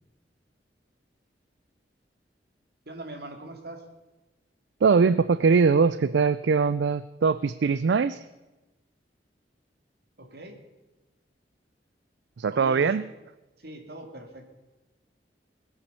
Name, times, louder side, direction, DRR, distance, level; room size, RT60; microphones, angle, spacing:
voice 1, 2.9-3.8 10.2-10.6 12.5-12.9 13.6-14.5, right 2 dB, 65° right, 5 dB, 2.5 m, -41 dB
voice 2, 4.8-8.3 12.4-13.1, right 5 dB, 80° right, 16 dB, 0.4 m, -22 dB
20.0 x 8.4 x 6.8 m, 1.1 s
head